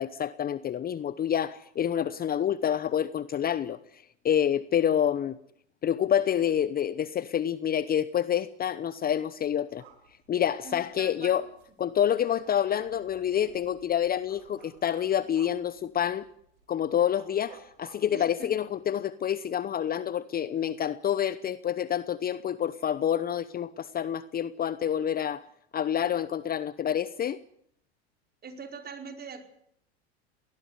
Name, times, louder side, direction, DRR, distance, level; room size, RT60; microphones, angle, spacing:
voice 1, 0.0-3.8 4.2-5.4 5.8-9.8 10.3-11.4 11.8-16.2 16.7-25.4 25.7-27.4, left 9 dB, 30° left, 0.9 m, -28 dB
sound 1, 9.7-18.8, right 7 dB, 70° right, 5.2 m, -57 dB
voice 2, 10.6-11.4 18.1-18.5 28.4-29.4, right 5 dB, 30° right, 4.7 m, -42 dB
20.5 x 19.5 x 9.6 m
hypercardioid pair, 90°, 33 cm